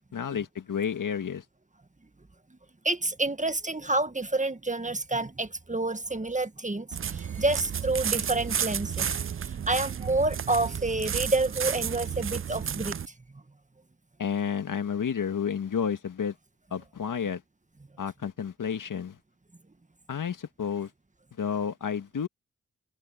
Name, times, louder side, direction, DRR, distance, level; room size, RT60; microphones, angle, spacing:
voice 1, 0.1-1.4 14.2-16.3 16.7-17.4 18.0-19.2 20.1-20.9 21.4-22.3, left 7 dB, 70° left, 2.0 m, -31 dB
voice 2, 2.8-13.0, right 2 dB, 20° right, 1.6 m, -29 dB
sound 1, 6.9-13.1, right 8 dB, 40° right, 0.5 m, -32 dB
cardioid pair, 45°, 33 cm